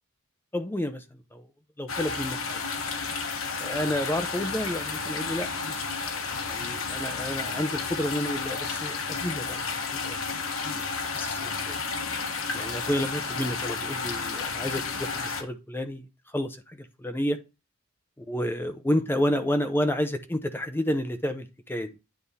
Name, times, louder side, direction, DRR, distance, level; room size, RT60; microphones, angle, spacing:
voice 1, 0.5-1.0 1.3-1.4 1.8-2.6 3.6-5.8 6.5-10.8 11.1-11.8 12.5-16.1 16.3-17.4 18.3-21.9, left 1 dB, 10° left, 0.6 m, -30 dB
sound 1, 1.9-15.4, left 4 dB, 75° left, 1.1 m, -32 dB
9.6 x 3.5 x 4.0 m
head